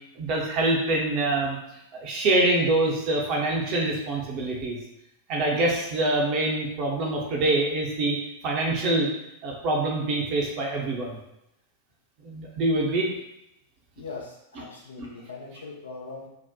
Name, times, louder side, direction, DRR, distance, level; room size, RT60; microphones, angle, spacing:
voice 1, 0.2-1.6 1.9-4.8 5.3-8.2 8.4-9.1 9.4-11.2 12.2-13.1 15.0-15.1, right 2 dB, 40° right, -1 dB, 0.6 m, -25 dB
voice 2, 14.0-16.3, left 4 dB, 70° left, -2 dB, 0.5 m, -40 dB
2.7 x 2.0 x 2.3 m, 0.84 s
figure-of-eight pair, 90°, 0 cm